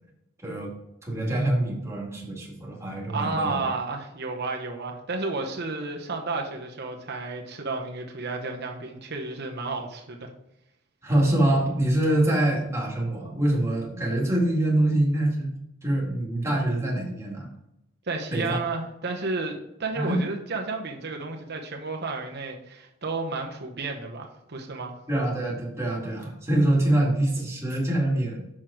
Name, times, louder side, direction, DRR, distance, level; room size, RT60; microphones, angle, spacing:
voice 1, 1.0-3.6 11.0-15.5 15.8-17.5 18.3-18.6 19.9-20.2 25.1-28.6, right 1 dB, 15° right, -3 dB, 2.0 m, -25 dB
voice 2, 3.1-10.3 18.1-24.9, right 3 dB, 50° right, 2 dB, 1.0 m, -32 dB
6.2 x 6.1 x 4.8 m, 0.84 s
head